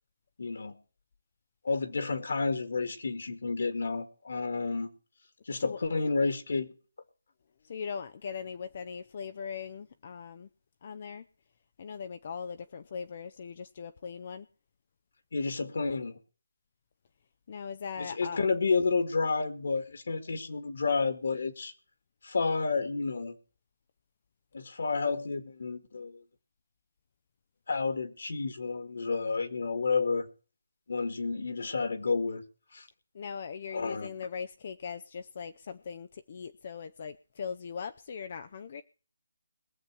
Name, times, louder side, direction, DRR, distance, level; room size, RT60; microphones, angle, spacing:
voice 1, 0.4-0.8 1.6-4.9 5.5-6.7 15.3-16.2 18.0-21.7 22.2-23.4 24.5-26.2 27.7-30.3 30.9-32.4 32.7-32.9 33.7-34.1, left 4 dB, 60° left, 9 dB, 1.9 m, -30 dB
voice 2, 7.6-10.5 10.8-11.2 11.8-14.5 17.5-18.4 33.1-38.8, left 6 dB, 35° left, 9 dB, 0.6 m, -40 dB
22.0 x 7.3 x 4.5 m, 0.38 s
hypercardioid pair, 170°, 0 cm